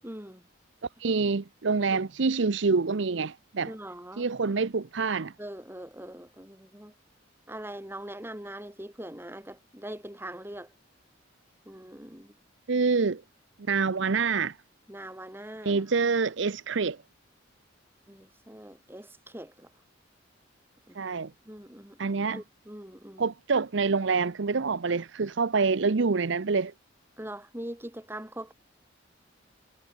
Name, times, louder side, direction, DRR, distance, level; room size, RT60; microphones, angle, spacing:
voice 1, 0.0-0.4 1.9-2.0 3.7-4.3 5.4-6.9 7.5-10.7 11.6-12.3 14.9-15.8 18.1-19.7 20.9-21.1 21.4-23.3 27.2-28.5, right 1 dB, 10° right, 4.2 m, -42 dB
voice 2, 1.0-3.7 4.2-5.3 12.7-13.2 13.7-14.6 15.6-17.0 20.9-21.3 22.0-22.4 23.2-26.7, right 4 dB, 65° right, 0.7 m, -26 dB
head